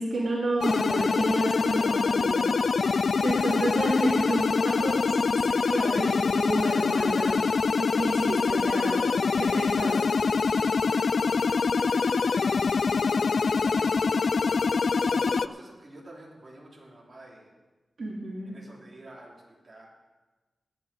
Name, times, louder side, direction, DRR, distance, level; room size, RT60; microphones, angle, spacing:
voice 1, 0.0-2.7 3.2-7.4 7.8-10.2 18.0-18.5, right 2 dB, 55° right, -3 dB, 2.7 m, -31 dB
sound 1, 0.6-15.5, left 4 dB, 55° left, 0.4 m, -25 dB
voice 2, 11.8-14.4 15.0-17.5 18.4-19.9, right 1 dB, 30° right, -4 dB, 2.9 m, -49 dB
18.0 x 10.0 x 4.9 m, 1.2 s
wide cardioid pair, 155°, 0 cm